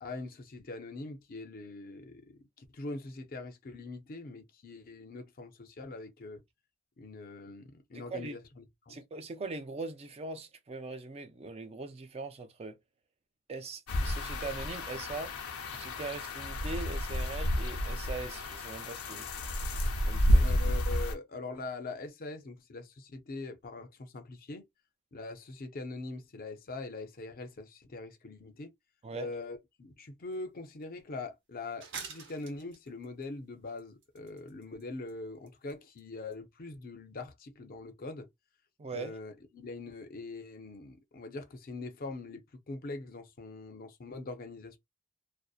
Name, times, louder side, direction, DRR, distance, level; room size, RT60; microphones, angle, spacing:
voice 1, 0.0-6.4 7.0-9.0 20.4-24.7 25.1-28.7 29.1-38.3 38.9-44.8, left 3 dB, 45° left, 0.5 m, -43 dB
voice 2, 7.9-8.4 8.9-12.8 13.5-15.3 15.7-19.3 20.1-20.5 29.0-29.3 38.8-39.2, right 3 dB, 30° right, 0.4 m, -41 dB
sound 1, 13.9-21.1, left 1 dB, 90° left, 0.6 m, -30 dB
sound 2, 30.3-30.4 30.8-30.9 31.8-33.3 33.8-34.8 35.1-35.2 35.5-35.7 36.0-36.1 36.3-36.4, right 5 dB, 60° right, 0.8 m, -45 dB
2.6 x 2.0 x 2.3 m
head